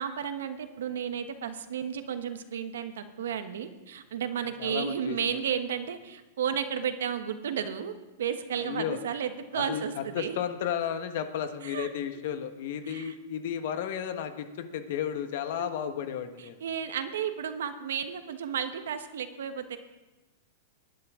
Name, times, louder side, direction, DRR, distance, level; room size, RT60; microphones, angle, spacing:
voice 1, 0.0-10.4 11.6-11.9 12.9-13.1 15.6-15.7 16.4-19.8, right 8 dB, 85° right, 9 dB, 1.2 m, -33 dB
voice 2, 4.6-5.4 8.6-9.0 9.5-16.5, left 9 dB, 60° left, 9 dB, 1.2 m, -33 dB
19.5 x 10.5 x 3.7 m, 1.1 s
supercardioid pair, 150°, 0 cm